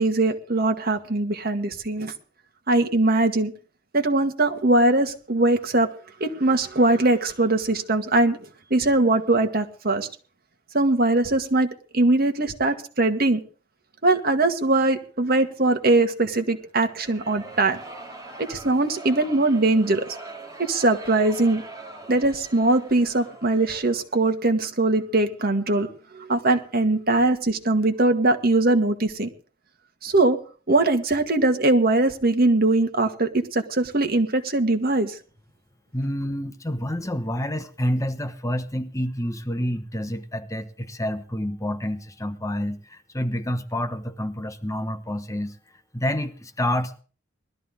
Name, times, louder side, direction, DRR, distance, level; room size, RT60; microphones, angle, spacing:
voice 1, 0.0-2.1 2.7-3.5 3.9-5.9 6.2-8.4 8.7-10.1 10.7-13.4 14.0-17.8 18.4-20.1 20.6-21.6 22.1-25.9 26.1-29.3 30.0-30.4 30.7-35.2, right 2 dB, 55° right, 5 dB, 1.9 m, -21 dB
sound 1, 16.9-24.1, right 2 dB, 20° right, 2.9 m, -42 dB
voice 2, 35.9-45.6 45.9-47.0, equal, 15° left, 9 dB, 1.1 m, -28 dB
20.5 x 13.5 x 3.7 m, 0.38 s
head